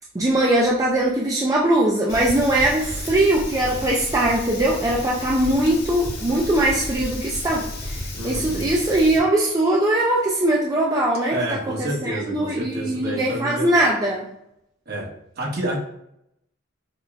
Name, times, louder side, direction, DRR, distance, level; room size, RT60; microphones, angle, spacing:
voice 1, 0.1-14.3, right 1 dB, 20° right, -3 dB, 0.3 m, -21 dB
Fire, 2.1-9.2, left 1 dB, 55° left, 0.9 m, -33 dB
voice 2, 8.2-8.7 11.3-13.7 14.9-15.1 15.4-15.8, right 1 dB, 55° right, -3 dB, 1.2 m, -29 dB
5.1 x 2.1 x 2.4 m, 0.77 s
head